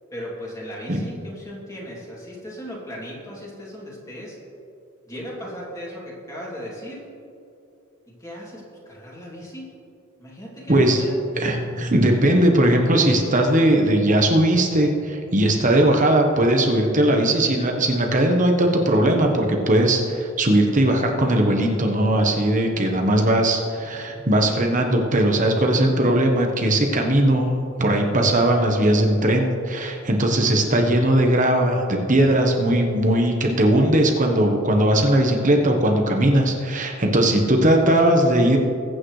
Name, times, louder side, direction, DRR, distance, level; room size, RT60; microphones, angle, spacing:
voice 1, 0.1-4.4 5.1-7.1 8.2-9.7 10.2-11.2, equal, 15° left, -4 dB, 2.8 m, -37 dB
voice 2, 10.7-11.1 11.4-27.5 27.8-38.6, right 1 dB, 35° right, 2 dB, 1.2 m, -19 dB
21.0 x 8.7 x 3.3 m, 2.6 s
head